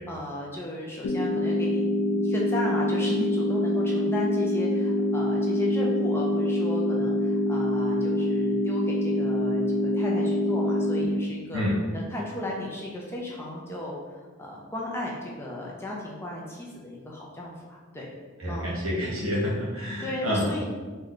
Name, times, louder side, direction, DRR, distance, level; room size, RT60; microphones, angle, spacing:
voice 1, 0.1-11.6 11.9-18.1 18.5-18.7 20.0-20.6, left 1 dB, 10° left, -3 dB, 0.4 m, -35 dB
sound 1, 1.0-11.1, left 1 dB, 80° left, 0.4 m, -25 dB
voice 2, 18.4-20.4, equal, 80° right, -5 dB, 1.1 m, -28 dB
3.0 x 2.2 x 3.8 m, 1.4 s
head